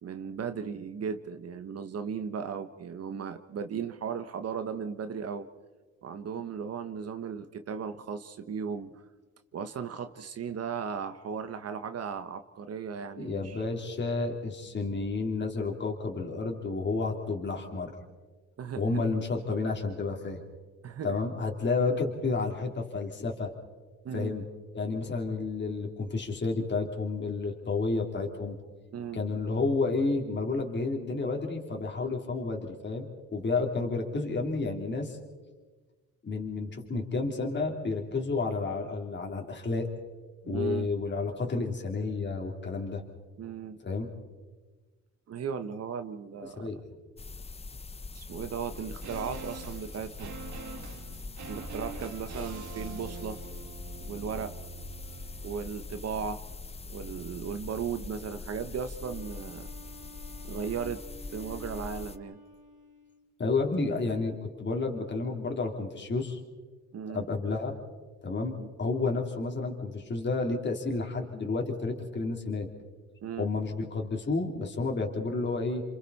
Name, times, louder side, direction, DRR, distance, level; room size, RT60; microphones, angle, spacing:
voice 1, 0.0-5.5 6.0-9.0 9.5-13.6 18.6-18.8 20.8-21.1 24.0-24.3 28.9-29.2 40.4-40.9 43.4-43.8 45.3-46.7 48.1-50.4 51.5-53.4 54.0-54.5 55.4-56.4 56.9-59.7 60.4-61.0 61.3-62.4 66.9-67.3 68.6-68.7 73.2-73.5, right 6 dB, 55° right, 9 dB, 1.2 m, -36 dB
voice 2, 13.2-17.9 18.8-20.4 21.0-23.5 24.1-24.4 24.7-28.5 29.1-35.2 36.2-39.9 40.5-43.0 43.8-44.1 46.6-46.9 63.4-66.4 67.1-67.8 68.2-72.7 73.4-75.8, left 3 dB, 35° left, 1 dB, 3.3 m, -31 dB
sound 1, 47.2-62.2, left 4 dB, 20° left, 0.8 m, -43 dB
sound 2, 48.7-58.1 58.4-58.5, right 5 dB, 75° right, 2.3 m, -45 dB
Wind instrument woodwind instrument, 59.0-63.3, equal, 25° right, 3.1 m, -50 dB
29.5 x 26.5 x 4.2 m, 1.3 s
cardioid pair, 90°, 30 cm